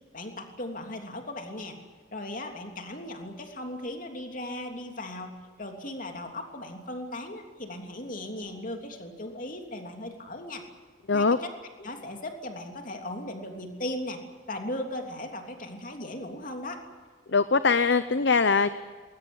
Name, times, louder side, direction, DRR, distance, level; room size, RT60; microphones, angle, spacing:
voice 1, 0.1-1.8 2.1-10.6 11.1-11.5 11.8-14.2 14.5-16.8, left 1 dB, 40° left, 4 dB, 3.2 m, -37 dB
voice 2, 17.3-18.7, left 4 dB, 55° left, 13 dB, 0.7 m, -22 dB
21.5 x 19.5 x 9.8 m, 1.5 s
head